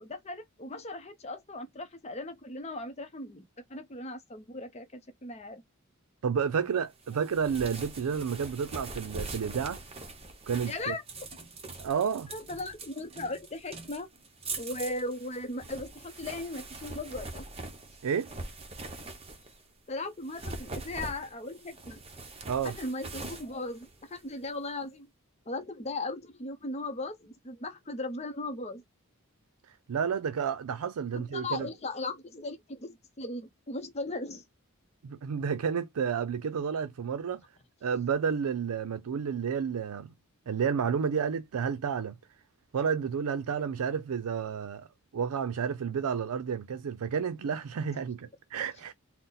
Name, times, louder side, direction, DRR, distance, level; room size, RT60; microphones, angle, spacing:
voice 1, 0.0-3.4 3.7-5.6 10.7-11.2 12.3-14.1 14.5-17.5 18.9-19.1 19.9-22.0 22.6-25.1 25.5-28.8 31.1-34.4, left 2 dB, 30° left, 0.6 m, -38 dB
voice 2, 6.2-9.8 10.5-11.0 11.8-12.3 18.0-18.3 22.5-22.7 29.9-31.7 35.0-37.4 37.8-40.1 40.5-42.2 42.7-44.9 45.1-48.9, right 6 dB, 85° right, 0.4 m, -31 dB
sound 1, 7.0-19.7 20.2-24.5, right 3 dB, 25° right, 0.8 m, -43 dB
4.0 x 2.1 x 3.9 m
head